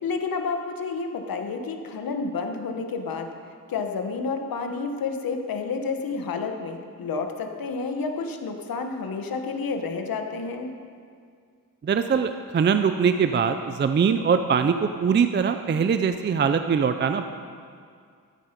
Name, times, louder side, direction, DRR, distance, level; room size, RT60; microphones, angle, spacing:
voice 1, 0.0-3.3 3.7-10.7, left 4 dB, 80° left, 5 dB, 1.2 m, -30 dB
voice 2, 11.8-17.3, right 6 dB, 30° right, 8 dB, 0.4 m, -22 dB
13.5 x 9.8 x 5.2 m, 2.2 s
wide cardioid pair, 145°, 35 cm